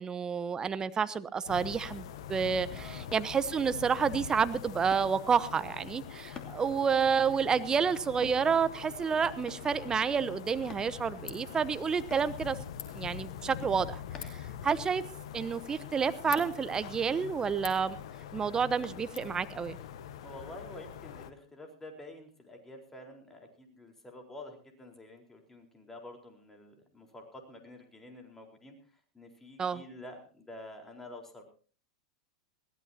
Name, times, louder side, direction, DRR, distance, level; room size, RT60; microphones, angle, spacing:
voice 1, 0.0-12.6 12.9-15.0 15.3-18.0 18.3-19.8 29.6-29.8, right 6 dB, 20° right, 14 dB, 0.9 m, -29 dB
sound 1, 1.5-21.3, left 9 dB, 65° left, 1.3 m, -44 dB
voice 2, 2.7-3.1 20.2-28.8 29.1-31.4, left 1 dB, 10° left, 3 dB, 4.2 m, -49 dB
sound 2, 3.1-3.3 4.9-5.1 6.3-6.6 8.2-8.4 9.5-9.8 10.7-10.9 12.1-12.3 14.1-14.5 16.4-16.6 18.8-19.0 19.6-19.7, left 5 dB, 25° left, 2.6 m, -47 dB
Ratchet pawl, 10.1-19.2, left 9 dB, 45° left, 3.3 m, -51 dB
21.5 x 16.0 x 2.8 m, 0.40 s
hypercardioid pair, 95°, 3 cm